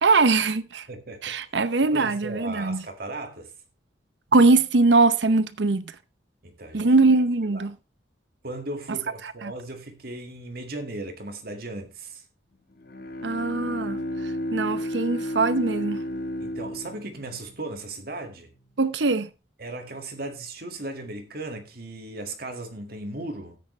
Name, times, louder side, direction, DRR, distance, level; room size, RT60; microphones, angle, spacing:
voice 1, 0.0-0.8 1.2-2.8 4.3-5.8 6.7-7.7 9.4-9.5 13.2-14.0 14.5-16.0 18.8-19.3, right 3 dB, 75° right, 0.8 m, -21 dB
voice 2, 0.9-1.2 1.8-3.5 6.4-6.9 7.4-7.7 8.4-12.2 16.4-18.5 19.6-23.6, right 2 dB, 55° right, 1.9 m, -37 dB
Bowed string instrument, 12.7-18.3, left 1 dB, 55° left, 1.3 m, -33 dB
13.5 x 9.4 x 3.2 m
head